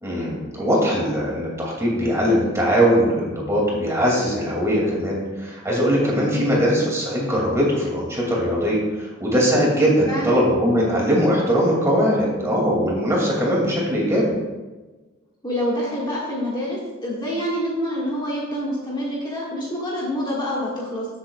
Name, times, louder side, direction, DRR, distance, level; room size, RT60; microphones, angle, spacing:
voice 1, 0.0-14.3, equal, 15° right, -4 dB, 2.4 m, -21 dB
voice 2, 6.3-6.6 10.1-10.4 15.4-21.1, equal, 20° left, -5 dB, 1.8 m, -26 dB
14.0 x 7.7 x 2.4 m, 1.2 s
head